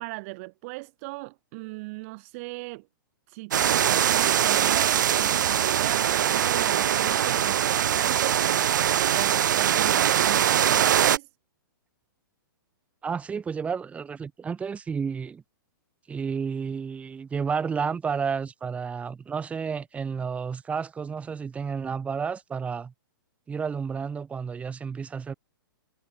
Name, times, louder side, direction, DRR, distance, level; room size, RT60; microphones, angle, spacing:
voice 1, 0.0-2.9 3.3-11.3, right 27 dB, 40° right, 2.2 m, -38 dB
sound 1, 3.5-11.2, right 10 dB, 60° right, 1.0 m, -22 dB
voice 2, 13.0-15.4 16.1-22.9 23.5-25.3, right 6 dB, 10° right, 0.9 m, -31 dB
figure-of-eight pair, 115°, 12 cm